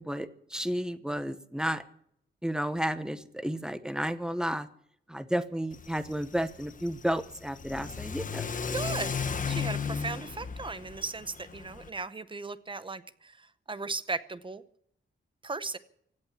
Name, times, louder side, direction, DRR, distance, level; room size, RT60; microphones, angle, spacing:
voice 1, 0.0-1.8 2.4-4.7 5.1-8.4, equal, 5° right, 12 dB, 0.9 m, -32 dB
Car / Accelerating revving vroom, 5.7-11.9, left 6 dB, 40° left, 1.1 m, -35 dB
voice 2, 8.7-9.1 9.5-14.6 15.4-15.8, right 3 dB, 25° right, 14 dB, 0.7 m, -37 dB
16.5 x 8.7 x 9.6 m, 0.69 s
wide cardioid pair, 175°, 20 cm